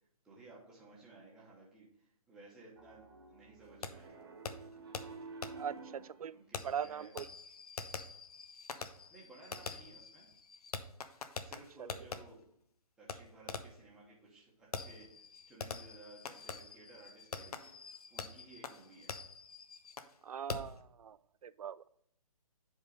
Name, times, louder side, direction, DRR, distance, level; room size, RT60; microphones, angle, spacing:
voice 1, 0.2-4.5 5.7-7.1 9.1-10.3 11.4-12.4 13.0-19.2, right 2 dB, 5° right, -6 dB, 1.0 m, -57 dB
Piano, 2.8-6.2, right 4 dB, 40° right, 1.2 m, -51 dB
Fireworks, 3.8-3.9 4.5-4.6 4.9-5.0 5.4-5.5 6.5-12.2 13.1-13.2 13.5-13.8 14.7-20.1 20.5-20.8, left 5 dB, 80° left, 0.9 m, -44 dB
voice 2, 6.6-7.3 20.2-21.2 21.4-21.8, right 8 dB, 70° right, 17 dB, 0.4 m, -40 dB
7.9 x 3.7 x 5.1 m, 0.70 s
hypercardioid pair, 175°, 19 cm